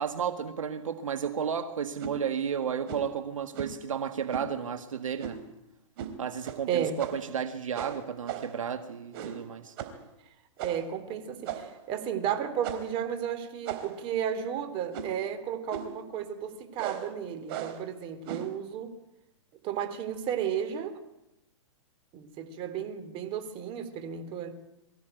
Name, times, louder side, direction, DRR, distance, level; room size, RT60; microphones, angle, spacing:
voice 1, 0.0-5.4 6.2-9.7, right 7 dB, 85° right, 1.7 m, -33 dB
sound 1, 2.0-2.2 2.9-3.1 3.5-3.8 4.3-4.5 5.2-5.5 6.0-6.1 6.4-6.6 7.0-7.3 7.7-8.6 9.1-9.5 9.8-10.0 10.6-10.9 11.4-11.8 12.6-13.0 13.6-14.1 14.9-15.2 15.7-16.0 16.8-17.1 17.5-17.8 18.2-18.6, right 9 dB, 50° right, 3.6 m, -37 dB
voice 2, 6.7-7.0 10.6-18.9 19.6-20.9 22.1-24.5, right 9 dB, 35° right, 3.3 m, -33 dB
23.0 x 15.0 x 9.1 m
hypercardioid pair, 130°, 16 cm